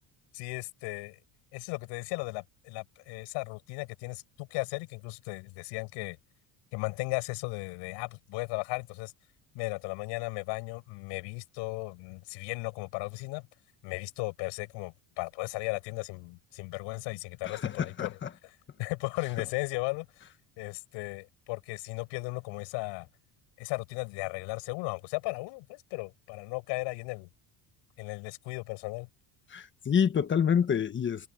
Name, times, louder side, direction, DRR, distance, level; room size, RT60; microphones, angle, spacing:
voice 1, 0.3-1.2 1.5-6.2 6.7-9.1 9.5-13.5 13.8-20.3 20.6-23.1 23.6-27.3 28.0-29.1, left 27 dB, 90° left, 7.7 m, -36 dB
voice 2, 17.4-18.3 29.5-31.3, left 7 dB, 25° left, 1.4 m, -27 dB
cardioid pair, 140°, 42 cm